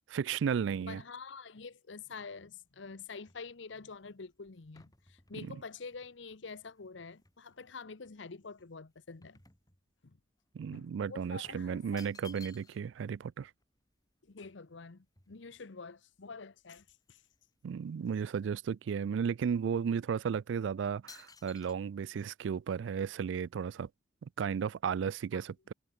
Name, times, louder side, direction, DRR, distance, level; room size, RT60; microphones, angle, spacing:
voice 1, 0.1-1.0 10.5-13.5 17.6-23.9 24.2-25.7, right 7 dB, 75° right, 0.3 m, -34 dB
voice 2, 0.8-9.4 10.0-10.2 10.7-12.1 14.2-17.2 25.3-25.4, left 4 dB, 75° left, 0.9 m, -47 dB
sound 1, 2.5-7.6 8.0-10.2 10.5-10.7 11.4-13.0 13.3-13.4 13.6-15.8 16.3-16.4 16.7-17.4 17.7-18.9 19.5-19.7 20.3-20.6 21.1-21.7, left 4 dB, 20° left, 4.2 m, -59 dB
head